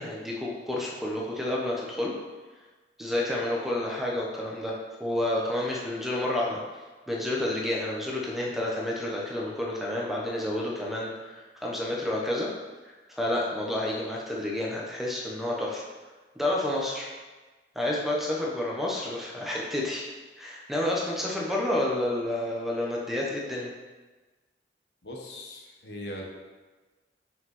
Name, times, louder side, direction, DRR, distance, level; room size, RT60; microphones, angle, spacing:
voice 1, 0.0-2.1 3.0-4.7 5.0-6.6 7.1-12.5 13.2-15.8 16.4-17.1 17.7-20.1 20.4-23.7, left 1 dB, ahead, -3 dB, 1.1 m, -30 dB
voice 2, 25.0-26.2, left 1 dB, 65° left, 0 dB, 1.4 m, -40 dB
5.9 x 5.4 x 6.0 m, 1.3 s
head